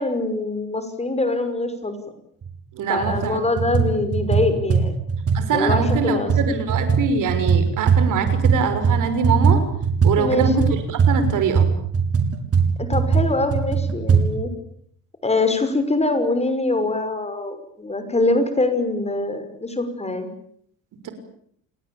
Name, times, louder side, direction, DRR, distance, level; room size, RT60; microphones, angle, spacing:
voice 1, 0.0-1.9 2.9-4.9 5.5-6.3 10.2-10.5 12.8-14.5 15.2-20.3, left 2 dB, 20° left, 9 dB, 5.9 m, -23 dB
sound 1, 2.4-2.5 3.0-3.3 3.6-8.6 8.8-14.2, right 6 dB, 45° right, 6.8 m, -19 dB
voice 2, 2.7-3.7 5.3-9.6 10.0-10.6 10.9-11.7 21.0-21.1, right 5 dB, 65° right, 9 dB, 6.3 m, -23 dB
29.5 x 19.5 x 8.9 m, 0.67 s
supercardioid pair, 85°, 34 cm